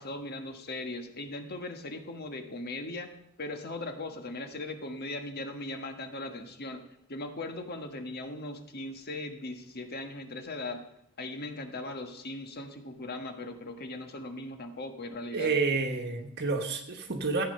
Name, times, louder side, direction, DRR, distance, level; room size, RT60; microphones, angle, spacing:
voice 1, 0.0-3.1 3.4-6.8 7.1-10.8 11.2-15.5, left 2 dB, 50° left, 6 dB, 1.4 m, -39 dB
voice 2, 15.3-17.4, right 4 dB, 50° right, 3 dB, 1.2 m, -29 dB
15.0 x 9.0 x 5.4 m, 0.76 s
head